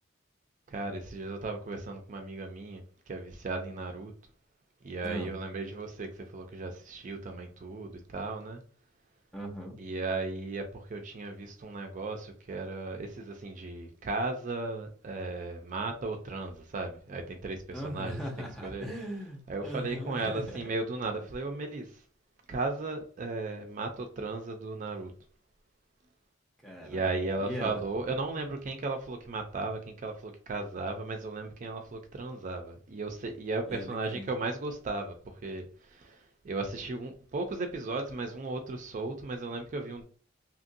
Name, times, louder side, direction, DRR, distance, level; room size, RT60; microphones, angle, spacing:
voice 1, 0.7-4.1 4.8-8.6 9.8-18.2 18.6-18.8 19.5-22.0 22.5-25.1 26.8-40.0, right 3 dB, 40° right, 0.4 m, -36 dB
voice 2, 9.3-9.8 17.7-20.7 26.6-27.1 27.4-27.8 33.6-34.3, equal, ahead, 0.7 m, -39 dB
2.9 x 2.6 x 2.6 m
head